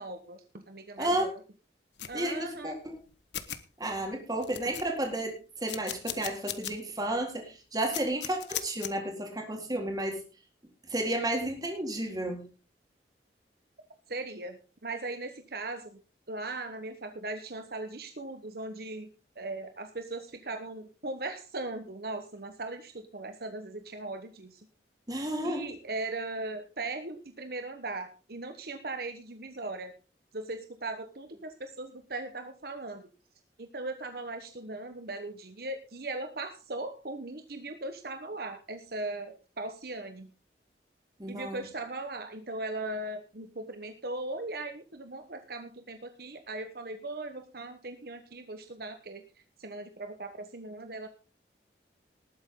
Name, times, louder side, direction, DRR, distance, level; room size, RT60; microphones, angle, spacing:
voice 1, 0.0-1.3 2.1-2.8 14.1-16.0 16.3-19.1 19.4-24.7 25.4-29.9 30.3-33.1 33.6-40.3 41.3-51.1, right 2 dB, 60° right, 7 dB, 1.2 m, -39 dB
voice 2, 1.0-1.3 2.1-3.0 3.8-10.2 10.9-12.5 25.1-25.6 41.2-41.6, right 1 dB, 20° right, 2 dB, 3.9 m, -32 dB
sound 1, 2.0-2.2 3.0-3.1 3.3-3.6 4.1-4.2 4.4-5.1 5.7-6.7 7.1-7.2 7.9-8.9, left 11 dB, 85° left, 1.2 m, -37 dB
19.5 x 8.9 x 3.8 m, 0.33 s
head